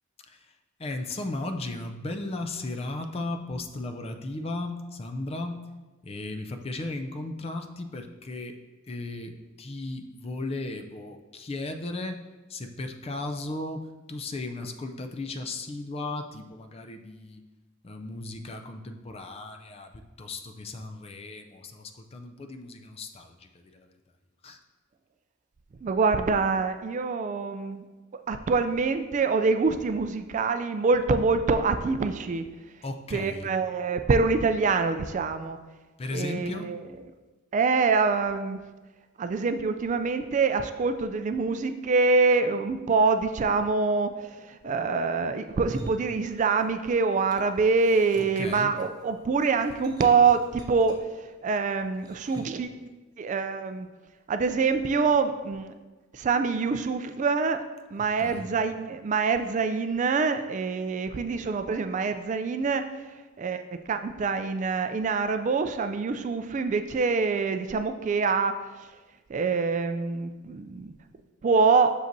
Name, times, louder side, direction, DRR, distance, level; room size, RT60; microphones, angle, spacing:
voice 1, 0.3-5.7 6.0-8.6 8.8-12.2 12.5-17.4 17.8-24.0 24.4-24.6 32.8-33.5 36.0-36.7 48.4-48.7 58.2-58.5, left 2 dB, 30° left, 6 dB, 0.4 m, -36 dB
voice 2, 25.8-27.8 28.3-32.4 33.1-35.6 36.1-36.8 37.5-38.6 39.2-51.0 51.4-52.9 53.2-53.9 54.3-55.7 56.1-57.6 57.9-62.9 63.4-68.5 69.3-70.9 71.4-71.9, right 4 dB, 35° right, 9 dB, 0.3 m, -25 dB
sound 1, 45.5-46.9 47.1-52.7, right 1 dB, 20° right, 0.8 m, -46 dB
7.7 x 6.5 x 2.7 m, 1.2 s
head